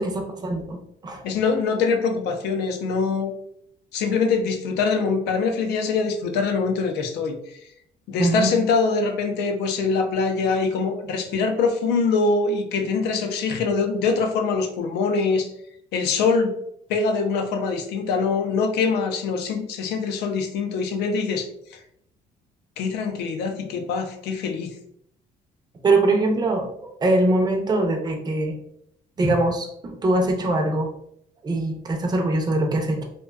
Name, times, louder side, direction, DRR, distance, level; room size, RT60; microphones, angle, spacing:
voice 1, 0.0-1.2 8.2-8.5 25.8-28.5 29.2-30.9 31.4-33.0, right 2 dB, 25° right, 2 dB, 0.5 m, -22 dB
voice 2, 1.2-3.3 3.9-7.4 8.1-15.5 15.9-16.6 16.9-21.8 22.8-24.7, left 4 dB, 80° left, 5 dB, 0.5 m, -23 dB
2.5 x 2.2 x 2.3 m, 0.72 s
cardioid pair, 110°, 17 cm